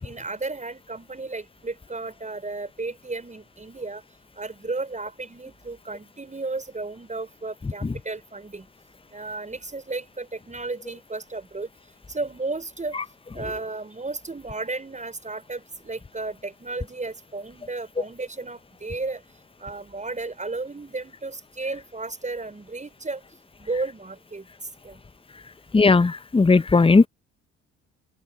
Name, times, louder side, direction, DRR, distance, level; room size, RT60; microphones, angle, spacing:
voice 1, 0.0-4.0 4.4-8.7 9.1-11.7 12.1-13.0 13.3-19.2 19.6-23.2 23.6-24.5 24.8-25.0, right 3 dB, 20° right, 6.0 m, -33 dB
voice 2, 25.7-27.1, left 4 dB, 15° left, 1.2 m, -16 dB
open air
figure-of-eight pair, 50°, 39 cm